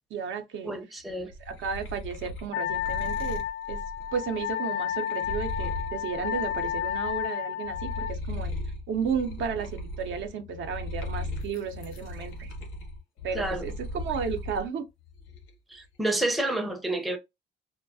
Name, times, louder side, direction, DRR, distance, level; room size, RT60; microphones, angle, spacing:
voice 1, 0.1-0.7 1.5-3.4 3.7-3.8 4.1-8.5 8.9-12.5 13.2-14.8, right 6 dB, 70° right, 0.6 m, -33 dB
voice 2, 0.6-1.3 13.3-13.6 15.7-17.2, right 1 dB, ahead, 0.4 m, -29 dB
sound 1, 1.1-7.3 7.6-14.7 15.1-15.7, left 1 dB, 90° left, 0.8 m, -37 dB
Wind instrument woodwind instrument, 2.5-8.2, left 10 dB, 65° left, 0.4 m, -31 dB
2.3 x 2.1 x 2.5 m
cardioid pair, 90°, 20 cm